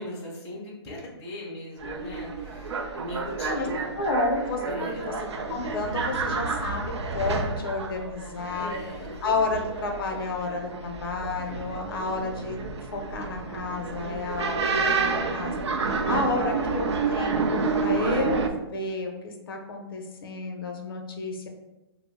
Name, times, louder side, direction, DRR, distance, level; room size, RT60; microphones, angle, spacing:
voice 1, 0.0-3.9 4.6-5.1 8.4-9.1, left 1 dB, 10° left, -6 dB, 0.3 m, -39 dB
sound 1, 1.8-18.5, right 4 dB, 90° right, 0.4 m, -30 dB
voice 2, 4.0-5.1 5.5-8.7 9.2-12.6 12.9-21.5, left 3 dB, 55° left, 3 dB, 0.5 m, -31 dB
2.6 x 2.0 x 3.5 m, 1.0 s
hypercardioid pair, 160°, 14 cm